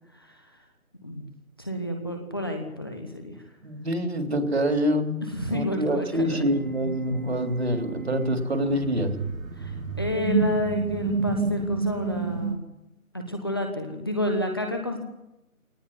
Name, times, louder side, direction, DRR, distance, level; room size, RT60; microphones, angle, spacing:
voice 1, 0.1-0.6 1.0-1.3 1.6-3.4 5.2-6.4 9.5-12.7 13.1-15.0, left 1 dB, 15° left, 3 dB, 1.3 m, -30 dB
voice 2, 3.6-5.2 5.5-9.1, equal, 45° right, 6 dB, 3.5 m, -26 dB
sound 1, 6.1-12.6, right 4 dB, 70° right, 3.5 m, -30 dB
19.5 x 19.0 x 9.8 m, 0.90 s
figure-of-eight pair, 175°, 42 cm